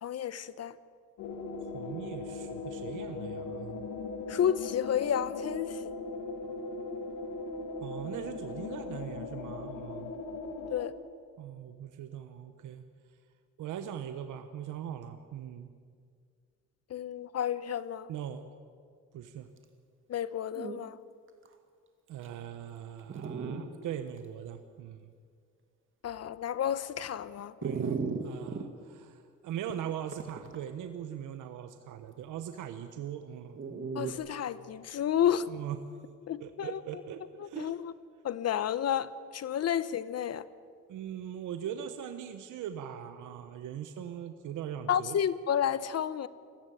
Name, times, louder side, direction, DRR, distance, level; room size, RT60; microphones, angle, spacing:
voice 1, 0.0-0.7 4.3-5.8 10.7-10.9 16.9-18.1 20.1-21.0 26.0-27.5 33.9-35.5 36.3-36.8 37.6-37.9 38.2-40.4 44.9-46.3, left 9 dB, 55° left, 0.9 m, -31 dB
sound 1, 1.2-10.9, left 3 dB, 85° left, 2.0 m, -39 dB
voice 2, 1.7-3.9 7.8-10.1 11.4-12.8 13.6-15.7 18.1-18.4 19.1-19.5 22.1-25.1 27.6-33.6 35.5-35.8 36.4-37.8 40.9-45.2, right 10 dB, 80° right, 1.1 m, -40 dB
Dog, 20.1-20.2 20.5-20.8 21.5-21.6 22.2-22.3 23.1-23.6 24.2-24.3 27.6-28.7 30.1-30.6 33.6-34.1, right 5 dB, 40° right, 2.2 m, -35 dB
20.5 x 15.0 x 9.2 m
cardioid pair, 90°, 30 cm